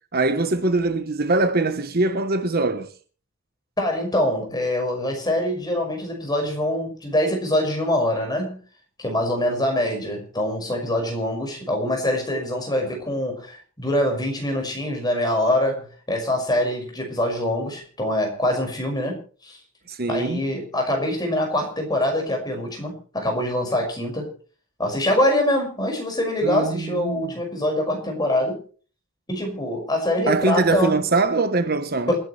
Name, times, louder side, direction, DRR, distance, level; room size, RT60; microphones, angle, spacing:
voice 1, 0.1-2.9 19.9-20.4 26.4-27.3 30.3-32.1, right 3 dB, 45° right, 1.1 m, -22 dB
voice 2, 3.8-8.6 9.0-19.6 20.1-24.3 24.8-28.6 29.3-31.0 32.1-32.2, left 1 dB, 20° left, 5.7 m, -24 dB
28.0 x 10.5 x 3.3 m
head